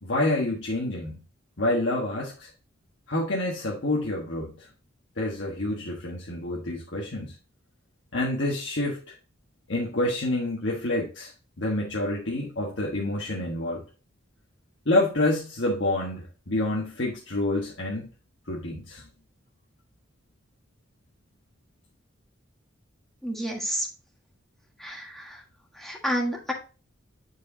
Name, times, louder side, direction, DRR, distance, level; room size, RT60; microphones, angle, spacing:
voice 1, 0.0-1.2 1.6-2.5 3.1-4.7 5.2-7.3 8.1-9.2 9.7-11.3 11.6-13.8 14.8-18.1 18.5-19.0, left 1 dB, 65° left, -3 dB, 1.4 m, -28 dB
voice 2, 23.2-23.9 24.8-25.4 25.7-26.5, equal, ahead, -1 dB, 1.6 m, -30 dB
9.8 x 4.8 x 2.7 m, 0.34 s
head